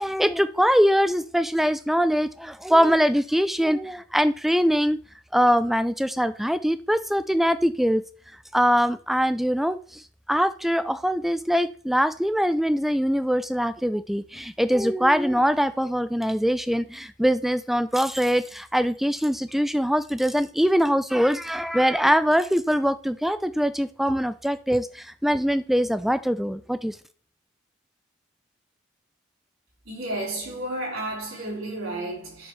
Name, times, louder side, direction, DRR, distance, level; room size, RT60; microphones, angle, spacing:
voice 1, 0.0-5.0 5.3-8.0 8.5-10.0 10.3-27.0, equal, ahead, 0.3 m, -23 dB
voice 2, 29.8-32.5, right 1 dB, 80° right, 4.2 m, -32 dB
7.8 x 6.4 x 3.2 m
head